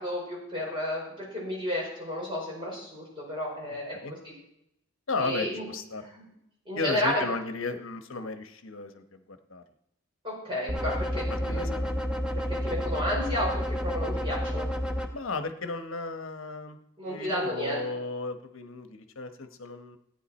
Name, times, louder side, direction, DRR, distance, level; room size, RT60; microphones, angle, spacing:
voice 1, 0.0-4.0 4.2-4.3 5.2-5.6 6.0-6.2 6.6-7.2 10.2-11.9 12.5-14.7 17.0-17.8, left 1 dB, 25° right, -4 dB, 4.8 m, -32 dB
voice 2, 5.1-6.1 6.7-9.6 11.5-11.9 15.1-16.8 17.1-20.0, left 3 dB, 75° left, 8 dB, 1.0 m, -35 dB
sound 1, 10.7-15.1, equal, 5° right, 0.8 m, -30 dB
14.5 x 9.3 x 4.3 m, 0.81 s
head